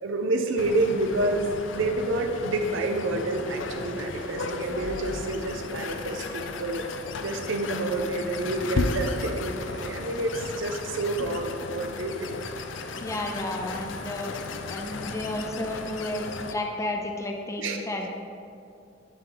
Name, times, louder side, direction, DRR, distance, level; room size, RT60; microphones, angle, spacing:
voice 1, 0.0-6.9 7.2-12.4 17.6-18.1, right 2 dB, 90° right, 4 dB, 0.6 m, -29 dB
sound 1, 0.6-16.5, left 3 dB, 75° left, 0.4 m, -35 dB
voice 2, 13.0-14.3 14.7-18.1, left 1 dB, 15° left, 2 dB, 0.4 m, -32 dB
10.5 x 3.7 x 3.8 m, 2.5 s
head